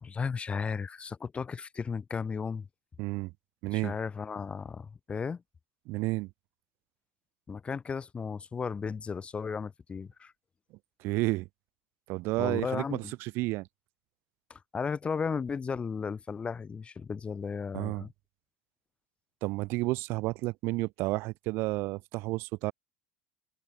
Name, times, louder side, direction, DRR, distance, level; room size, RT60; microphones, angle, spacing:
voice 1, 0.0-2.7 3.7-5.4 7.5-10.3 12.4-13.1 14.5-18.1, left 5 dB, 25° left, 0.6 m, -35 dB
voice 2, 3.0-3.3 3.6-3.9 5.9-6.3 11.0-11.5 12.1-13.7 17.7-18.0 19.4-22.7, right 21 dB, 55° right, 0.3 m, -31 dB
hypercardioid pair, 75°, 5 cm